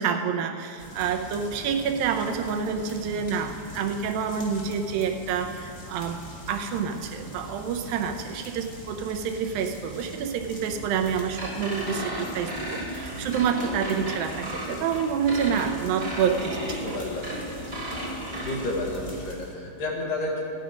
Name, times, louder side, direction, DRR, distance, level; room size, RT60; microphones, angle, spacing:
voice 1, 0.0-6.2 6.5-16.8, right 7 dB, 80° right, 5 dB, 2.4 m, -28 dB
sound 1, 0.8-19.5, left 1 dB, 45° left, 0.4 m, -42 dB
sound 2, 11.4-18.6, right 1 dB, 20° right, 1.8 m, -34 dB
voice 2, 16.6-17.4 18.4-20.4, left 1 dB, 70° left, -2 dB, 3.4 m, -31 dB
15.0 x 10.5 x 5.0 m, 2.5 s
omnidirectional pair, 4.1 m